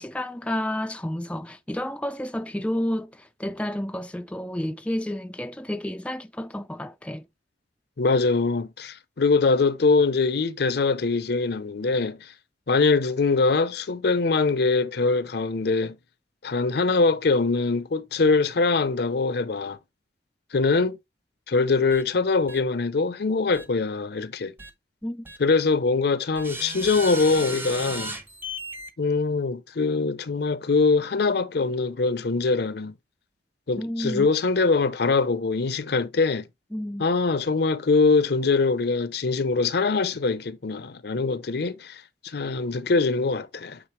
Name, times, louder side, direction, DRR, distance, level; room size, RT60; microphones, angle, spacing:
voice 1, 0.0-7.3 25.0-25.3 33.8-34.3 36.7-37.1, left 1 dB, 5° left, 0.4 m, -30 dB
voice 2, 8.0-12.3 12.7-16.0 16.4-19.8 20.5-21.0 21.5-24.5 25.4-28.1 29.0-32.9 33.7-36.5 37.0-43.8, left 4 dB, 65° left, 0.7 m, -23 dB
sound 1, 21.9-22.0 22.5-22.6 23.5-23.7 24.6-24.7 25.3-25.4 26.4-28.9, right 1 dB, 10° right, 0.8 m, -35 dB
8.8 x 4.1 x 3.1 m
head